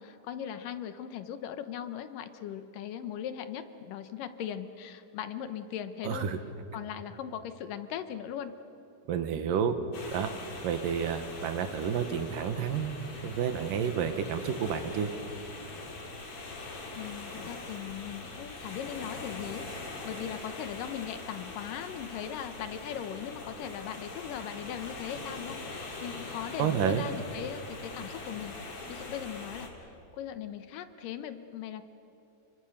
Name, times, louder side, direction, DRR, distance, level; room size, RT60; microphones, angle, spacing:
voice 1, 0.0-6.3 6.7-8.5 17.0-19.6 20.0-28.5 28.9-29.7 30.1-31.8, left 9 dB, 85° left, 10 dB, 2.7 m, -39 dB
voice 2, 6.0-6.4 9.1-9.8 10.1-10.3 10.6-15.1 26.6-27.1, right 7 dB, 85° right, 8 dB, 3.0 m, -30 dB
sound 1, 9.9-29.7, left 3 dB, 45° left, 3.5 m, -42 dB
29.5 x 23.5 x 6.6 m, 2.8 s
omnidirectional pair, 3.8 m